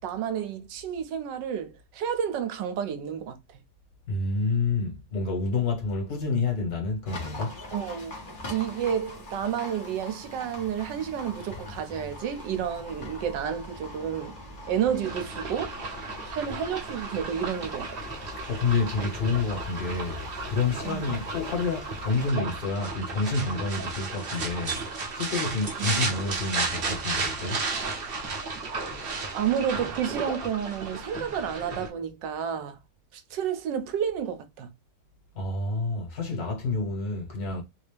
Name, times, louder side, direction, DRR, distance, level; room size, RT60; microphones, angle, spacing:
voice 1, 0.0-3.4 7.7-14.4 14.6-15.8 16.3-18.1 20.8-21.2 25.8-25.9 29.3-32.8 33.1-34.7, right 8 dB, 75° right, 1.3 m, -30 dB
voice 2, 4.1-7.6 18.5-24.8 25.1-27.6 35.4-37.6, left 3 dB, 55° left, 1.7 m, -28 dB
Livestock farm animals working animals, 7.1-22.3, left 2 dB, 35° left, 0.8 m, -42 dB
sound 1, 15.0-31.9, right 4 dB, 45° right, 0.8 m, -34 dB
3.5 x 2.7 x 3.3 m
omnidirectional pair, 2.0 m